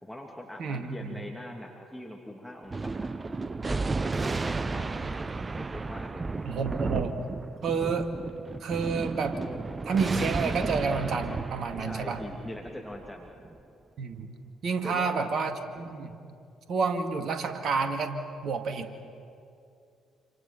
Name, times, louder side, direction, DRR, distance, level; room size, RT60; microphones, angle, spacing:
voice 1, 0.0-3.1 3.6-6.2 11.8-13.3 14.8-15.3, left 1 dB, 5° left, 0 dB, 2.9 m, -42 dB
voice 2, 0.6-1.2 6.4-7.2 7.6-8.1 8.6-9.4 9.9-12.2 14.0-14.3 14.6-16.1 16.7-18.9, right 5 dB, 50° right, 7 dB, 2.1 m, -29 dB
Thunder, 2.7-13.5, right 3 dB, 25° right, 0.7 m, -33 dB
28.0 x 26.5 x 6.0 m, 2.5 s
figure-of-eight pair, 45°, 0 cm